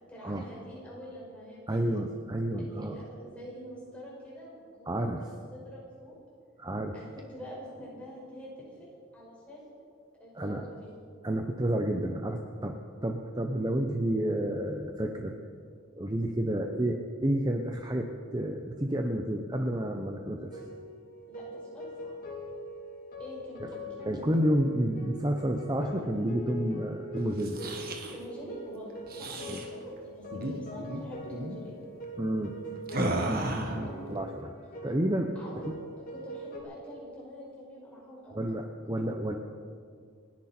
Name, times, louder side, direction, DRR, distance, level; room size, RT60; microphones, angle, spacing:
voice 1, 0.1-1.6 2.6-6.2 6.9-8.9 9.1-9.7 10.2-10.9 21.2-22.1 23.2-23.8 28.1-31.8 33.6-34.0 35.4-35.6 36.1-38.4, equal, 5° left, -6 dB, 5.1 m, -46 dB
voice 2, 1.7-3.0 4.9-5.3 6.6-7.1 10.3-10.7 11.2-15.3 16.0-20.6 23.6-23.7 24.1-27.6 29.5-29.6 32.2-32.5 33.0-34.5 34.8-35.8 38.3-39.4, right 1 dB, 20° right, 3 dB, 0.8 m, -30 dB
sound 1, 20.5-36.6, left 1 dB, 40° left, 3.1 m, -43 dB
sound 2, 27.3-28.2 29.1-29.7 30.3-30.5 30.8-31.0 31.3-31.6 32.9-33.8, right 1 dB, 40° right, 1.7 m, -33 dB
29.5 x 10.5 x 4.4 m, 2.2 s
head